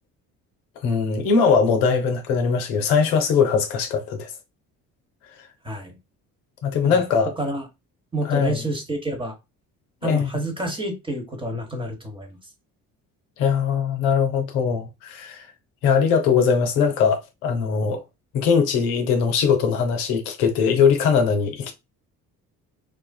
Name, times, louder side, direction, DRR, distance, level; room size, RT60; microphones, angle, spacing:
voice 1, 0.8-4.3 6.6-7.3 8.2-8.6 10.0-10.3 13.4-15.5 15.8-18.0 18.3-21.7, left 6 dB, 65° left, 0.7 m, -21 dB
voice 2, 5.6-6.0 6.8-7.0 7.4-7.7 8.1-9.4 10.0-12.4, right 1 dB, 10° right, 0.9 m, -29 dB
2.5 x 2.4 x 2.2 m
figure-of-eight pair, 50°, 45 cm